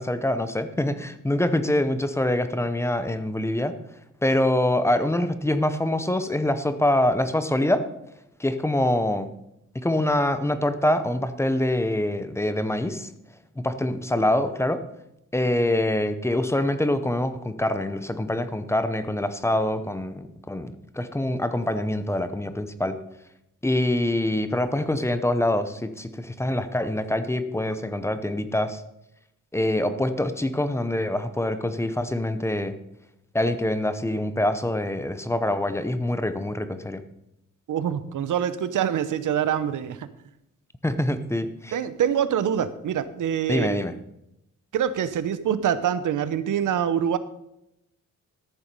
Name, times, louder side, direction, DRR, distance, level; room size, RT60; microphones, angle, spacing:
voice 1, 0.0-3.7 4.2-7.8 8.4-9.3 9.7-13.1 13.6-14.8 15.3-23.0 23.6-28.8 29.5-32.8 33.3-37.0 40.8-41.8 43.5-43.9, left 1 dB, 10° left, 11 dB, 0.7 m, -25 dB
voice 2, 37.7-40.1 41.7-43.8 44.7-47.2, right 9 dB, 80° right, 14 dB, 0.8 m, -25 dB
13.5 x 7.2 x 5.3 m, 0.84 s
wide cardioid pair, 145°, 31 cm